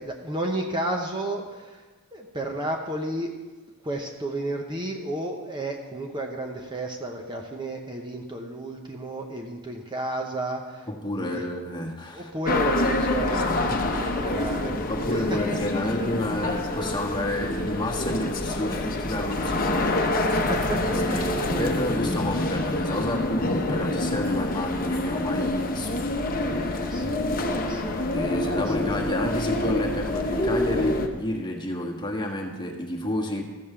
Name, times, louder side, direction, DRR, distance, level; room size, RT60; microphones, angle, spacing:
voice 1, 0.0-1.8 2.1-3.3 3.8-10.9 11.2-11.5 12.1-15.9 20.2-21.8 26.8-27.3 27.5-28.0 28.5-28.7, right 1 dB, 20° right, 2 dB, 0.8 m, -32 dB
voice 2, 10.9-12.3 13.7-13.9 14.3-14.5 14.9-20.4 20.9-26.9 28.1-33.4, left 1 dB, 20° left, 0 dB, 1.3 m, -30 dB
sound 1, 12.5-31.1, left 2 dB, 40° left, 0.9 m, -27 dB
14.0 x 5.4 x 6.8 m, 1.3 s
head